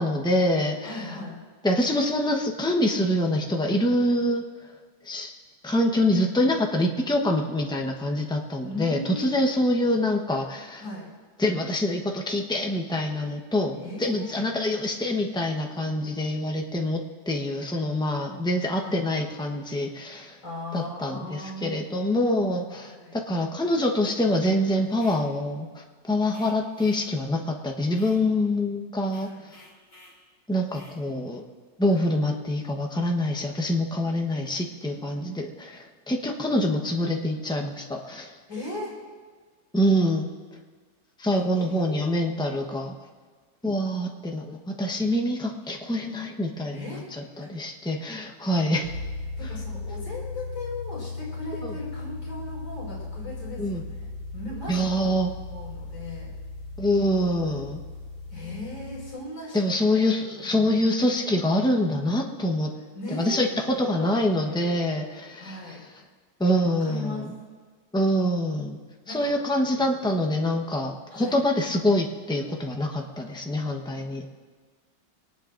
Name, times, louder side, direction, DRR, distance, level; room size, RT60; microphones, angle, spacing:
voice 1, 0.0-1.1 1.6-4.5 5.0-5.3 5.6-10.8 11.4-20.4 20.7-29.6 30.5-31.4 31.8-38.3 39.7-40.3 41.2-42.9 43.6-48.9 51.6-51.7 53.6-53.8 54.7-55.3 56.8-57.8 59.5-62.7 63.1-65.8 66.4-67.3 67.9-68.8 69.1-74.4, left 1 dB, 5° left, 1 dB, 0.3 m, -25 dB
voice 2, 0.8-1.4 8.6-9.5 10.8-11.1 13.8-14.3 18.8-19.0 20.4-21.7 22.8-23.2 29.2-29.4 31.9-32.0 38.5-38.9 41.3-42.0 46.7-47.1 47.4-47.5 49.4-54.1 54.3-55.0 55.5-56.3 58.3-59.6 59.9-60.0 60.5-60.7 62.9-64.7 65.4-65.8 66.8-67.3 69.0-69.3 71.1-71.4, left 2 dB, 75° left, -7 dB, 6.3 m, -38 dB
sound 1, 24.9-25.3 26.3-27.1 27.9-28.2 29.0-30.2 30.7-31.0, left 1 dB, 40° left, 3.9 m, -52 dB
sound 2, 48.8-59.1, left 3 dB, 90° right, 6.7 m, -37 dB
23.5 x 18.5 x 2.6 m, 1.5 s
omnidirectional pair, 2.2 m